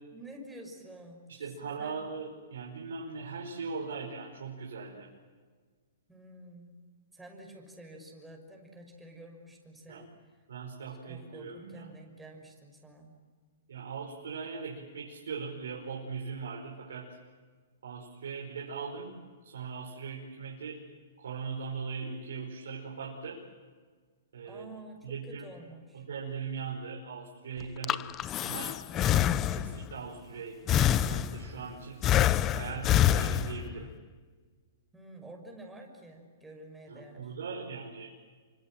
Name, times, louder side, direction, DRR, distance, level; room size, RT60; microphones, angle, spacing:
voice 1, 0.1-2.1 6.1-6.8 7.1-10.3 10.9-13.2 24.4-26.1 34.9-37.4, right 1 dB, 5° right, 1 dB, 6.1 m, -49 dB
voice 2, 1.3-5.1 9.9-10.0 10.5-11.9 13.7-17.1 17.8-19.1 19.4-20.8 21.2-23.4 24.3-24.6 25.0-25.5 25.9-28.1 28.4-32.0 32.5-33.9 36.9-38.1, right 5 dB, 80° right, -2 dB, 5.3 m, -40 dB
Breathing, 27.6-29.9 30.7-31.6 32.0-33.8, left 11 dB, 25° left, 0.7 m, -26 dB
28.5 x 26.0 x 7.7 m, 1.5 s
hypercardioid pair, 140°, 0 cm